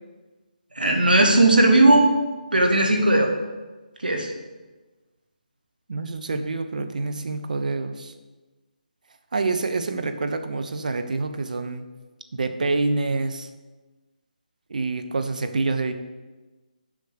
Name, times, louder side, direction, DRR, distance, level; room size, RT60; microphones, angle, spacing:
voice 1, 0.7-2.1 2.5-3.3 4.0-4.3, right 2 dB, 85° right, 3 dB, 1.6 m, -17 dB
voice 2, 5.9-8.1 9.3-11.8 12.3-13.5 14.7-15.9, right 3 dB, 60° right, 8 dB, 0.9 m, -27 dB
7.2 x 5.3 x 6.8 m, 1.2 s
figure-of-eight pair, 155°, 5 cm